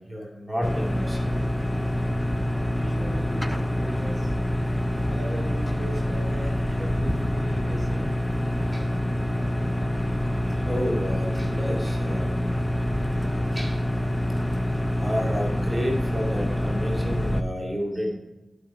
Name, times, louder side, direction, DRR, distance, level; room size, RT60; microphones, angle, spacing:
voice 1, 0.0-1.5 6.4-6.5 8.7-8.9 10.6-12.4 13.5-13.8 15.0-18.1, equal, 15° right, -3 dB, 2.3 m, -31 dB
sound 1, 0.6-17.4, left 1 dB, 5° left, 0.5 m, -26 dB
voice 2, 2.7-4.3 5.0-8.1, right 1 dB, 55° right, -2 dB, 2.3 m, -38 dB
11.0 x 5.3 x 4.9 m, 1.0 s
wide cardioid pair, 75°, 0 cm